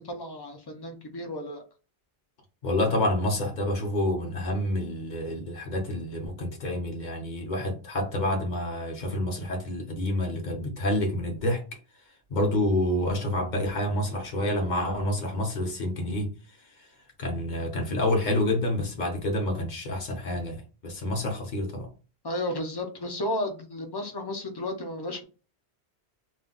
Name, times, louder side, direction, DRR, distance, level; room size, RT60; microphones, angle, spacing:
voice 1, 0.0-1.6 22.2-25.2, left 1 dB, 35° left, 0.4 m, -33 dB
voice 2, 2.6-11.7 12.3-16.3 16.8-16.9 17.2-21.9, left 1 dB, 50° left, 0.8 m, -28 dB
2.4 x 2.2 x 3.7 m
omnidirectional pair, 1.1 m